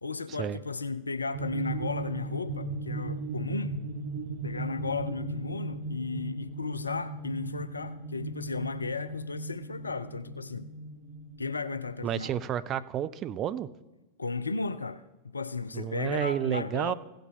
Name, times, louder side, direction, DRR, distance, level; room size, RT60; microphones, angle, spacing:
voice 1, 0.0-3.7 4.4-10.7 11.4-12.3 14.2-15.0 15.3-16.9, left 4 dB, 80° left, 0.5 m, -34 dB
sound 1, 1.3-12.5, right 3 dB, 55° right, 1.0 m, -37 dB
voice 2, 12.0-13.7 15.7-16.9, right 10 dB, 30° right, 0.5 m, -31 dB
16.0 x 5.5 x 5.5 m
figure-of-eight pair, 90°, 0 cm